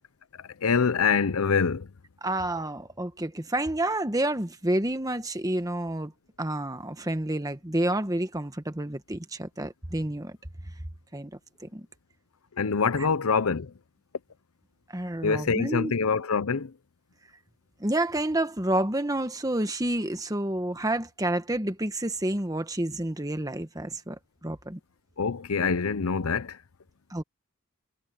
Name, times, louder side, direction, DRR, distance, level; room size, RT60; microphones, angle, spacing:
voice 1, 0.4-1.9 12.6-13.7 15.2-16.7 25.2-26.6, left 5 dB, 85° left, 0.7 m, -25 dB
voice 2, 2.2-6.1 6.4-10.4 11.1-11.3 11.6-11.9 13.0-13.1 14.9-15.9 17.8-24.8 27.1-27.2, right 1 dB, 15° right, 1.3 m, -29 dB
head